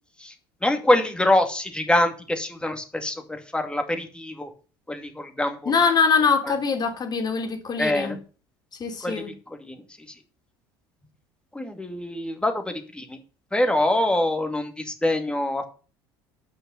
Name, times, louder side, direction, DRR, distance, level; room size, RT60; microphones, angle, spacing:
voice 1, 0.6-4.5 4.9-5.7 7.8-8.2 9.0-9.2 9.6-9.8 11.5-13.2 13.5-15.7, left 1 dB, 10° left, 2.4 m, -24 dB
voice 2, 5.6-8.1 8.8-9.3, left 5 dB, 35° left, 3.2 m, -23 dB
8.9 x 6.2 x 7.9 m
hypercardioid pair, 75°, 11 cm